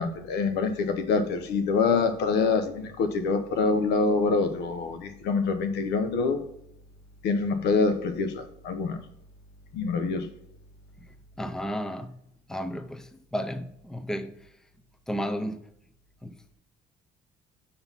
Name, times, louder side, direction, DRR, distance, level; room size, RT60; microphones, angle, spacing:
voice 1, 0.0-6.4 7.2-9.0 9.7-10.3, left 4 dB, 80° left, 0.9 m, -25 dB
voice 2, 11.0-12.2 12.5-14.5 15.1-15.6 16.2-16.4, equal, 5° left, 0.5 m, -33 dB
5.7 x 4.0 x 5.5 m
cardioid pair, 110°, 17 cm